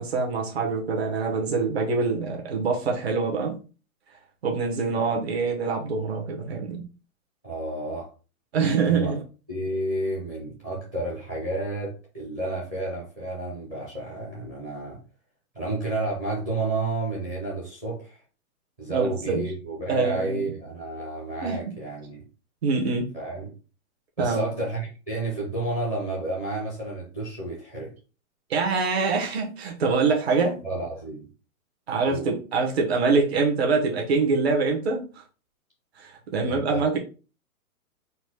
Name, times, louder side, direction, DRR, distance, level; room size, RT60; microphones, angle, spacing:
voice 1, 0.0-3.6 4.4-6.8 8.5-9.2 18.9-19.4 19.9-20.4 21.4-21.6 22.6-23.1 24.2-24.5 28.5-30.6 31.9-35.1 36.0-37.0, right 4 dB, 45° right, 1 dB, 1.1 m, -25 dB
voice 2, 7.4-8.1 8.8-9.1 9.5-15.0 15.5-18.2 18.8-22.2 23.1-23.5 24.2-27.9 30.6-31.2 32.1-32.3 36.4-36.8, right 2 dB, 15° right, -5 dB, 0.6 m, -31 dB
4.0 x 2.2 x 4.6 m, 0.34 s
hypercardioid pair, 170°, 44 cm